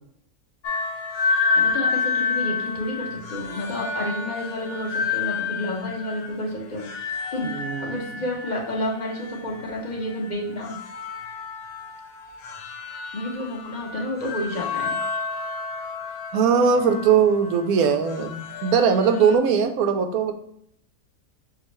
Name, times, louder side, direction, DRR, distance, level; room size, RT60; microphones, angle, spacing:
sound 1, 0.6-19.4, left 4 dB, 65° left, 0.7 m, -30 dB
voice 1, 1.5-6.8 7.3-7.5 7.8-10.8 13.1-14.9, left 1 dB, 35° left, -2 dB, 1.1 m, -30 dB
voice 2, 7.4-8.2 16.3-20.3, right 6 dB, 80° right, 6 dB, 1.1 m, -20 dB
6.2 x 2.4 x 3.0 m, 0.69 s
omnidirectional pair, 1.5 m